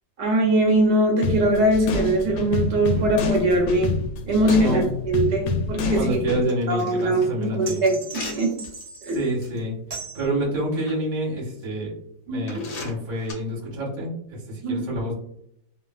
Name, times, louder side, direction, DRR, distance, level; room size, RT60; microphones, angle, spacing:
voice 1, 0.2-3.9 4.3-8.5 9.0-9.2 12.3-12.6 14.6-14.9, right 1 dB, 75° right, 1 dB, 1.2 m, -22 dB
sound 1, 1.2-6.4, left 4 dB, 80° left, 1.3 m, -27 dB
voice 2, 5.9-7.8 9.1-9.7 10.1-11.9 12.2-15.1, right 1 dB, 35° right, -4 dB, 0.9 m, -28 dB
sound 2, 6.5-8.8 9.4-9.6 10.4-11.0 11.6-11.7 12.5-13.3, left 3 dB, 55° left, 1.1 m, -38 dB
sound 3, 7.7-9.3 9.9-10.3, right 4 dB, 55° right, 0.5 m, -38 dB
3.1 x 2.3 x 2.2 m, 0.73 s
omnidirectional pair, 2.0 m